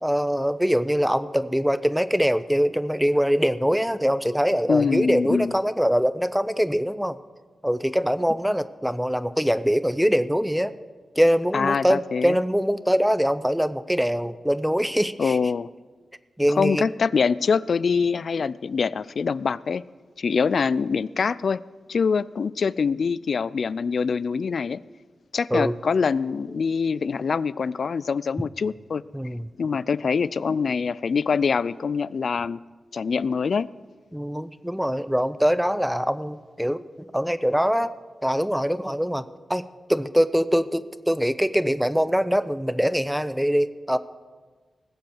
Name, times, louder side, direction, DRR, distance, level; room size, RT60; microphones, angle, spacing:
voice 1, 0.0-7.2 7.6-10.7 11.2-15.4 16.4-16.9 25.5-25.7 29.1-29.5 34.1-37.9 38.2-39.2 39.5-44.0, equal, 5° right, 14 dB, 0.6 m, -23 dB
voice 2, 4.7-5.5 11.5-12.4 15.2-15.7 16.6-19.8 20.2-21.6 21.9-24.8 25.3-29.0 29.6-32.6 32.9-33.7, left 5 dB, 65° left, 19 dB, 0.4 m, -24 dB
19.5 x 7.9 x 7.0 m, 1.4 s
cardioid pair, 65°, 0 cm